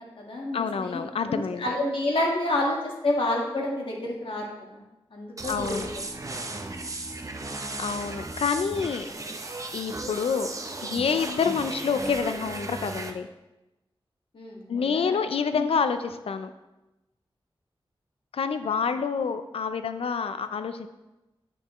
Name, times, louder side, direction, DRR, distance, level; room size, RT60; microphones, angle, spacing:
voice 1, 0.0-1.0 1.3-4.8 5.1-5.8 6.2-7.0 14.3-15.2 15.5-15.7, left 1 dB, 65° left, -1 dB, 1.5 m, -29 dB
voice 2, 0.5-1.8 5.5-5.9 7.8-9.1 9.7-10.5 10.8-13.3 14.7-16.5 18.3-20.9, left 6 dB, 85° left, 10 dB, 0.4 m, -27 dB
sound 1, 5.4-13.1, right 2 dB, 35° right, 0.6 m, -35 dB
8.7 x 6.0 x 3.0 m, 1.0 s
wide cardioid pair, 105°, 10 cm